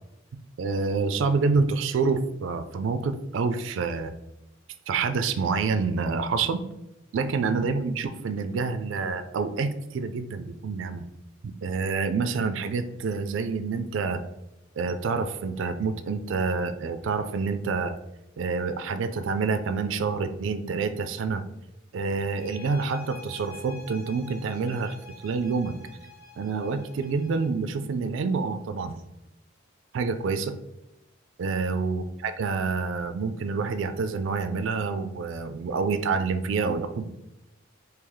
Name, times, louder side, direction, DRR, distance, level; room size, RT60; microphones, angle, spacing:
voice 1, 0.6-4.1 4.9-6.6 7.1-11.0 11.6-14.2 14.8-17.9 18.4-21.4 21.9-25.0 25.2-25.7 26.4-29.0 29.9-30.5 31.4-37.1, right 4 dB, 65° right, 9 dB, 0.3 m, -27 dB
sound 1, 22.3-27.6, left 3 dB, 85° left, 0.8 m, -47 dB
3.1 x 2.8 x 3.8 m, 0.90 s
head